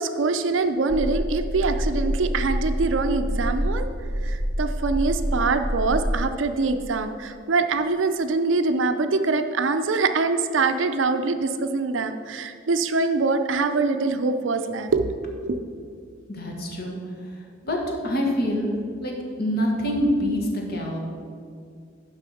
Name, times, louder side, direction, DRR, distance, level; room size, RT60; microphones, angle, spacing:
voice 1, 0.0-3.9 4.2-15.1 15.4-15.6, right 3 dB, 70° right, 8 dB, 0.5 m, -24 dB
sound 1, 0.9-6.2, equal, 20° right, 0.7 m, -27 dB
voice 2, 16.3-17.0 17.6-17.8 18.0-18.7 19.0-19.1 19.4-21.0, equal, 55° left, 1 dB, 1.5 m, -25 dB
6.9 x 5.4 x 6.9 m, 2.2 s
head